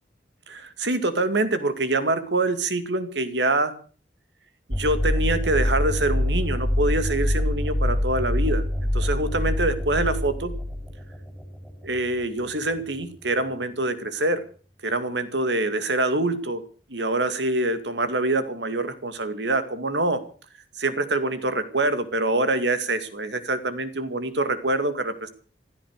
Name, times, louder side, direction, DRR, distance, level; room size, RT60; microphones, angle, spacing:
voice 1, 0.5-3.7 4.7-8.6 8.9-10.5 11.8-14.4 14.8-16.6 16.9-20.2 20.8-25.3, right 2 dB, 90° right, 10 dB, 2.3 m, -25 dB
sound 1, 4.7-11.9, left 1 dB, ahead, 3.8 m, -25 dB
16.0 x 13.0 x 6.5 m, 0.41 s
head